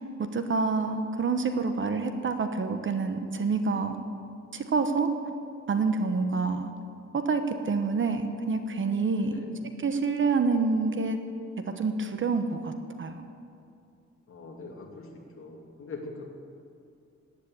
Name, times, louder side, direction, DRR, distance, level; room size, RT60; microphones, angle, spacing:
voice 1, 0.2-4.0 4.5-5.1 5.7-6.7 7.1-9.3 9.8-11.2 11.8-12.7 13.0-13.2, right 4 dB, 45° right, 7 dB, 1.0 m, -27 dB
voice 2, 9.1-9.5 14.3-15.1 15.4-16.3, left 3 dB, 45° left, 0 dB, 2.6 m, -42 dB
17.5 x 9.7 x 8.3 m, 2.5 s
wide cardioid pair, 170°, 29 cm